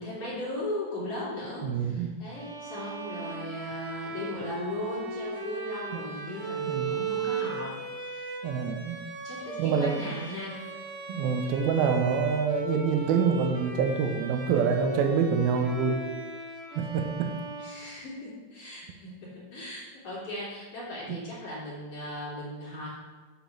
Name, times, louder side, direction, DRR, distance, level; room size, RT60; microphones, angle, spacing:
voice 1, 0.0-7.7 8.0-8.4 9.2-10.6 17.6-22.9, left 1 dB, 40° left, -7 dB, 3.7 m, -37 dB
voice 2, 1.6-2.1 6.7-7.0 8.4-9.0 9.6-10.0 11.1-16.0 16.8-17.4, right 6 dB, 85° right, 6 dB, 2.5 m, -26 dB
Bowed string instrument, 2.3-18.4, right 3 dB, 45° right, 2.2 m, -37 dB
8.3 x 5.1 x 6.4 m, 1.4 s
omnidirectional pair, 4.3 m